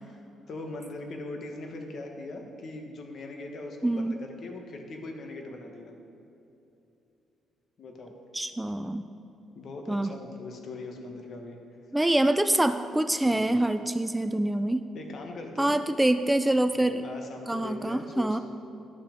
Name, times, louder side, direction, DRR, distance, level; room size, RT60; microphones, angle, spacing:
voice 1, 0.5-4.1 4.4-5.9 7.8-8.1 8.7-8.8 9.5-11.6 13.2-13.4 14.9-15.7 16.7-18.4, left 2 dB, 55° left, 3 dB, 1.3 m, -40 dB
voice 2, 3.8-4.1 8.3-9.0 9.9-10.2 11.9-14.9 15.6-17.0 17.5-18.4, right 1 dB, 10° right, 10 dB, 0.3 m, -25 dB
11.0 x 5.8 x 5.2 m, 2.8 s
cardioid pair, 90°, 0 cm